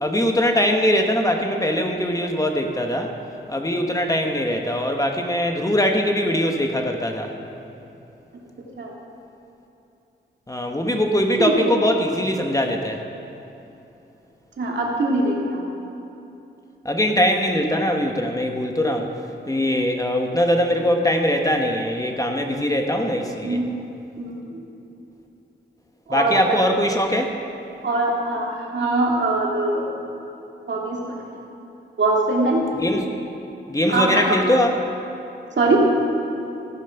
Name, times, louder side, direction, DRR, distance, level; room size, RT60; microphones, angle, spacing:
voice 1, 0.0-3.1 3.5-7.3 10.5-13.0 16.8-19.1 19.5-23.6 26.1-27.3 32.7-33.1 33.7-34.7, equal, 15° left, 3 dB, 1.0 m, -21 dB
voice 2, 14.6-15.6 23.4-23.6 24.2-24.6 26.1-26.6 27.8-29.9 30.7-31.3 32.0-32.7 33.9-34.4 35.6-35.8, right 2 dB, 70° right, -2 dB, 2.2 m, -22 dB
14.0 x 9.1 x 5.8 m, 2.9 s
wide cardioid pair, 120°, 19 cm